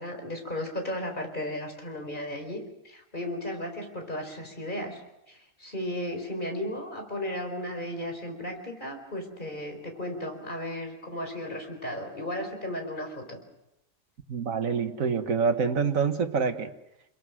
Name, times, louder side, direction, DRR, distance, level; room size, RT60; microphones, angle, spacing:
voice 1, 0.0-5.0 5.3-13.4, left 1 dB, 35° left, 4 dB, 4.7 m, -35 dB
voice 2, 14.3-16.7, right 5 dB, 75° right, 8 dB, 1.9 m, -26 dB
30.0 x 22.0 x 6.4 m, 0.85 s
omnidirectional pair, 1.4 m